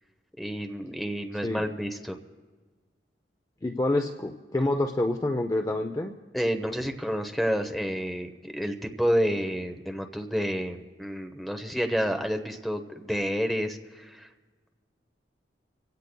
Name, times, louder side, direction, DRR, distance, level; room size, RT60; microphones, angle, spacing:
voice 1, 0.4-2.2 6.3-14.3, equal, ahead, 6 dB, 0.9 m, -29 dB
voice 2, 3.6-6.1, left 1 dB, 20° left, 5 dB, 0.5 m, -27 dB
26.5 x 16.5 x 2.3 m, 1.4 s
head